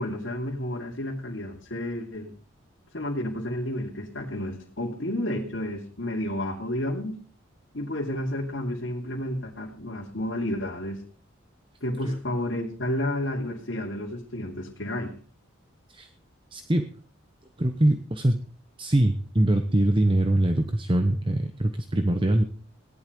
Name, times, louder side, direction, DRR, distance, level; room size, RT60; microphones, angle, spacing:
voice 1, 0.0-2.3 2.9-7.2 7.7-11.0 11.8-15.2, left 1 dB, 60° left, -3 dB, 2.9 m, -31 dB
voice 2, 16.5-16.9 17.6-18.4 18.8-22.4, right 1 dB, 25° right, 7 dB, 1.0 m, -23 dB
17.5 x 11.5 x 5.2 m, 0.42 s
head